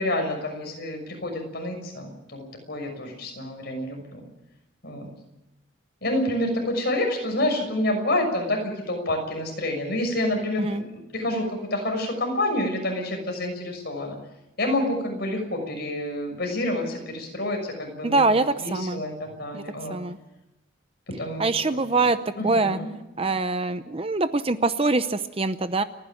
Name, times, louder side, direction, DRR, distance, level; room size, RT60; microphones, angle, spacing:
voice 1, 0.0-4.2 4.8-5.1 6.0-14.2 14.6-18.2 18.6-20.0 21.2-21.5 21.9-22.0 22.4-22.9, left 1 dB, 50° left, 3 dB, 6.4 m, -28 dB
voice 2, 18.0-19.0 19.5-19.6 19.9-20.2 21.4-22.2 22.4-22.8 23.2-25.8, right 3 dB, 25° right, 11 dB, 0.7 m, -24 dB
30.0 x 11.0 x 9.2 m, 0.95 s
head